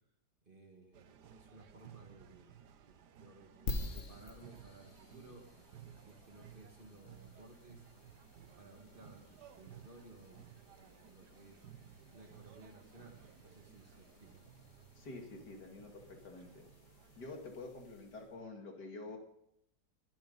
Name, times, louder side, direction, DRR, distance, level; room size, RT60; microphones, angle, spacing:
voice 1, 0.4-5.5 6.1-7.9 8.5-11.7 12.1-14.4, right 2 dB, 30° right, 2 dB, 2.0 m, -58 dB
sound 1, 0.9-17.3, right 9 dB, 70° right, 1.4 m, -58 dB
sound 2, 3.7-18.4, left 2 dB, 45° left, 1.7 m, -50 dB
voice 2, 15.0-16.7 17.2-19.2, left 3 dB, 65° left, 3 dB, 2.8 m, -48 dB
22.0 x 11.5 x 4.0 m, 0.74 s
omnidirectional pair, 1.9 m